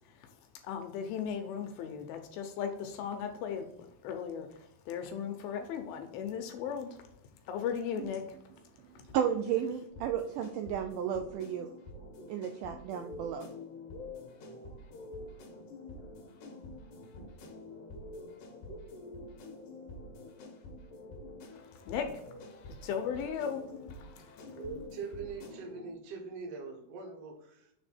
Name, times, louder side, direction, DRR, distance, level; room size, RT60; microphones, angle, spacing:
voice 1, 0.6-3.7 4.0-4.5 4.9-6.9 7.5-8.2 21.9-22.1 22.8-23.6 24.0-24.3, left 7 dB, 85° left, 5 dB, 2.5 m, -36 dB
voice 2, 8.8-11.7 12.3-13.5, right 9 dB, 90° right, 5 dB, 1.8 m, -33 dB
sound 1, 9.9-25.9, left 2 dB, 70° left, 2.6 m, -47 dB
voice 3, 24.5-27.7, right 4 dB, 60° right, 1 dB, 1.9 m, -42 dB
6.9 x 3.4 x 4.2 m, 0.79 s
omnidirectional pair, 4.2 m